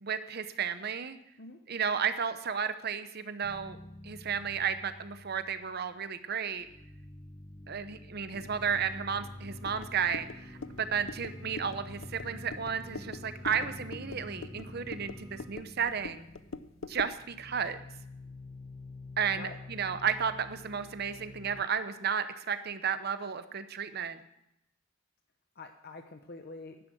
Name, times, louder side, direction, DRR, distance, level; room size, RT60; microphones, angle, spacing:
voice 1, 0.0-1.2 1.7-3.8 4.0-6.7 7.7-16.3 16.8-17.8 19.2-24.2, right 7 dB, 50° right, 11 dB, 0.8 m, -33 dB
sound 1, 3.4-6.2 6.5-21.6, left 1 dB, 20° left, 0.5 m, -48 dB
Singing, 8.3-15.5, left 1 dB, 20° right, 1.4 m, -51 dB
sound 2, 9.6-17.2, left 4 dB, 80° left, 0.6 m, -45 dB
voice 2, 13.5-14.0 19.3-19.6 25.5-26.8, left 3 dB, 50° left, 6 dB, 0.8 m, -46 dB
11.5 x 10.0 x 6.2 m, 0.82 s
head